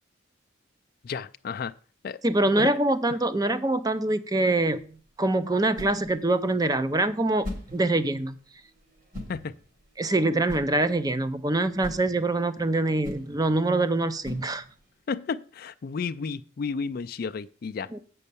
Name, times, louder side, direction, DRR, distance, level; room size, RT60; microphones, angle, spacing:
voice 1, 1.0-1.7 2.0-2.2 2.6-2.7 9.3-9.6 15.1-17.9, left 5 dB, 45° left, 0.3 m, -32 dB
voice 2, 2.2-7.5 7.7-8.4 10.0-14.6 17.9-18.0, right 2 dB, 20° right, 0.5 m, -24 dB
sound 1, 4.7-15.0, left 1 dB, 40° right, 3.0 m, -43 dB
8.4 x 5.5 x 6.8 m
head